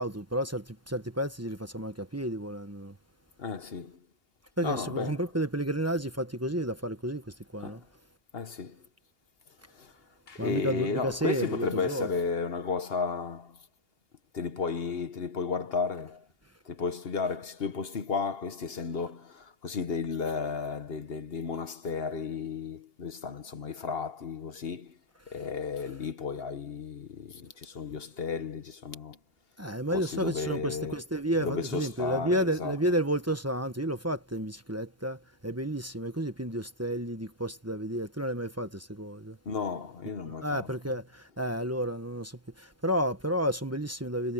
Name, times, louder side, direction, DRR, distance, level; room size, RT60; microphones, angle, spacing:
voice 1, 0.0-2.9 4.6-7.8 10.4-12.1 29.6-39.4 40.2-44.3, equal, 15° right, 1.2 m, -31 dB
voice 2, 3.4-4.0 4.6-5.2 7.6-7.8 8.3-8.8 9.8-9.9 10.3-13.6 14.3-16.2 16.6-25.0 25.3-29.2 29.9-30.9 31.4-32.8 39.4-40.7, left 5 dB, 65° left, 1.4 m, -33 dB
omnidirectional pair, 1.1 m